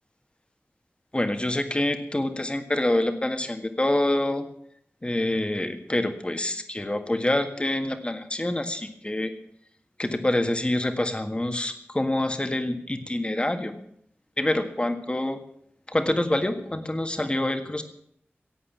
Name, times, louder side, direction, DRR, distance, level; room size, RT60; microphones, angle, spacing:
voice 1, 1.1-4.5 5.0-9.3 10.0-13.7 14.4-15.4 15.9-17.8, left 1 dB, 25° left, 7 dB, 1.7 m, -26 dB
17.5 x 8.3 x 7.3 m, 0.69 s
wide cardioid pair, 70°, 4 cm